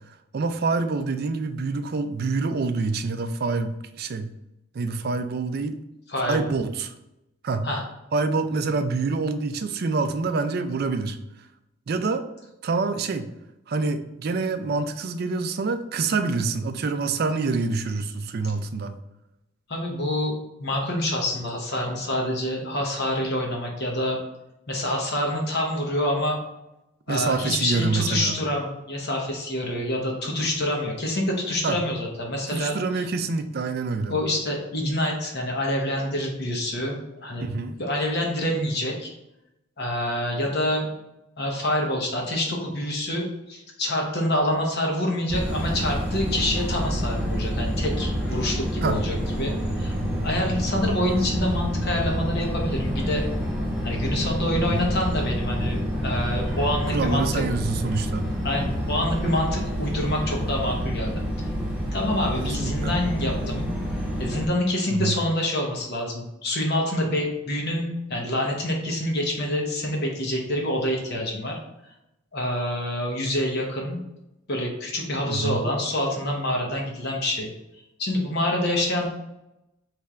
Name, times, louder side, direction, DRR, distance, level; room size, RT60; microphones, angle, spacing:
voice 1, 0.1-4.3 4.7-5.8 6.2-6.9 7.4-7.7 8.1-11.2 11.9-12.2 12.6-13.3 13.7-19.0 27.1-28.4 31.6-31.8 32.5-34.2 37.4-37.8 48.8-49.0 54.5-54.8 56.9-58.4 62.6-63.0 64.9-65.1 75.2-75.7, right 4 dB, 45° right, 9 dB, 0.4 m, -26 dB
voice 2, 19.7-20.3 20.6-24.2 24.7-26.4 27.1-33.0 34.1-37.5 37.8-39.1 39.8-40.9 41.4-49.9 50.2-53.3 53.8-57.4 58.4-61.2 61.9-63.7 64.2-71.6 72.3-74.0 74.5-77.5 78.0-79.1, left 1 dB, 50° left, 0 dB, 1.0 m, -26 dB
sound 1, 45.3-64.5, equal, 5° right, 1.1 m, -28 dB
3.7 x 3.2 x 4.2 m, 0.90 s
head